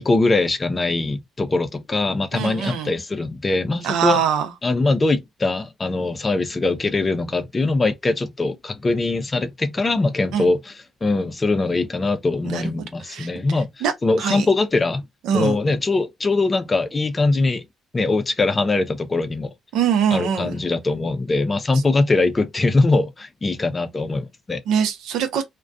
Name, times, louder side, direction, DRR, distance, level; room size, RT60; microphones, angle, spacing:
voice 1, 0.0-4.2 4.6-10.7 11.0-15.0 15.3-17.6 17.9-19.5 20.1-24.6, left 3 dB, 25° left, 0.5 m, -22 dB
voice 2, 2.3-2.9 3.8-4.5 10.3-10.5 12.4-12.7 13.1-13.3 13.8-13.9 14.2-14.5 15.2-15.6 19.7-20.5 24.7-25.4, right 8 dB, 85° right, 0.6 m, -22 dB
2.3 x 2.1 x 2.5 m
cardioid pair, 90°, 0 cm